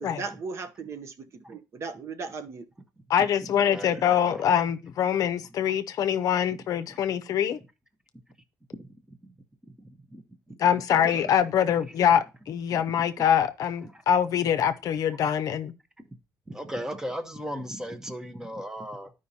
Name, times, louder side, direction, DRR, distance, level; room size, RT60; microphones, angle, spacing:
voice 1, 0.0-2.6 11.0-11.1, right 4 dB, 45° right, 0.7 m, -37 dB
voice 2, 3.1-7.6 10.6-15.7, left 9 dB, 60° left, 0.6 m, -24 dB
voice 3, 3.7-4.4 8.8-8.9 10.1-10.2 10.9-11.3 16.5-19.1, equal, 10° right, 0.8 m, -36 dB
13.0 x 5.0 x 2.8 m
cardioid pair, 155°, 7 cm